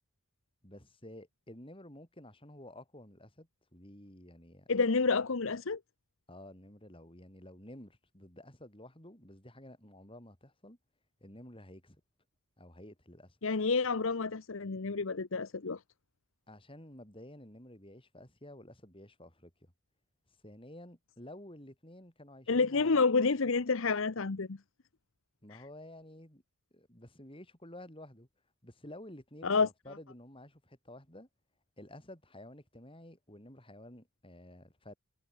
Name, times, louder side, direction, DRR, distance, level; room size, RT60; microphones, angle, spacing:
voice 1, 0.6-4.7 6.3-10.8 11.2-12.0 12.6-13.4 16.5-19.7 20.4-23.1 25.4-26.4 26.7-28.3 28.6-31.3 31.8-34.9, left 1 dB, 25° left, 6.5 m, -51 dB
voice 2, 4.7-5.8 13.4-15.8 22.5-24.6 29.4-29.7, left 4 dB, 60° left, 0.8 m, -29 dB
head